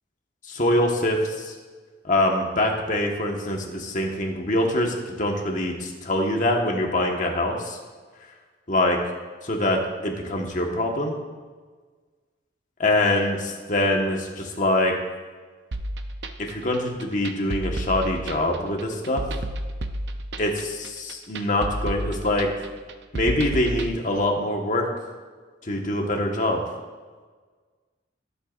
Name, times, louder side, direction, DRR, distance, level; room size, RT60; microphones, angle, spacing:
voice 1, 0.5-1.5 2.1-7.8 8.7-9.0 9.4-11.1 12.8-14.9 16.4-19.2 20.4-22.5 23.1-24.9 25.7-26.6, left 1 dB, 40° left, 1 dB, 1.5 m, -24 dB
sound 1, 15.7-23.9, right 1 dB, 60° right, 0.7 m, -31 dB
19.5 x 8.1 x 2.6 m, 1.5 s
head